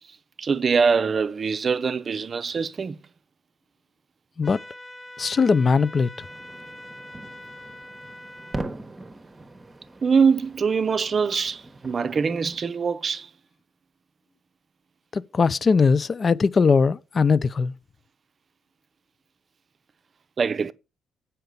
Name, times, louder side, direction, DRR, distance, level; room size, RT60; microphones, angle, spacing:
voice 1, 0.4-3.0 10.0-13.3 20.4-20.7, right 5 dB, 40° right, 0.6 m, -23 dB
sound 1, 4.4-8.6, left 1 dB, 20° left, 1.2 m, -43 dB
voice 2, 5.2-6.1 15.1-17.7, left 5 dB, 40° left, 0.4 m, -20 dB
sound 2, 6.2-12.6, right 2 dB, 20° right, 0.9 m, -40 dB
7.9 x 5.7 x 5.1 m
cardioid pair, 90°, 0 cm